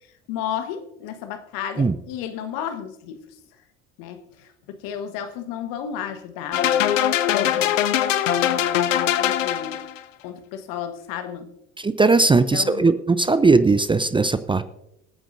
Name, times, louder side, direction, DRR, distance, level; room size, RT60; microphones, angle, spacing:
voice 1, 0.3-3.4 4.0-7.8 8.3-9.9 10.2-11.5 12.3-12.8, left 8 dB, 60° left, 8 dB, 1.4 m, -33 dB
sound 1, 6.5-10.0, left 11 dB, 80° left, 0.7 m, -21 dB
voice 2, 11.8-14.6, right 3 dB, 15° right, 13 dB, 0.6 m, -18 dB
26.0 x 9.0 x 2.6 m, 0.85 s
figure-of-eight pair, 60°, 38 cm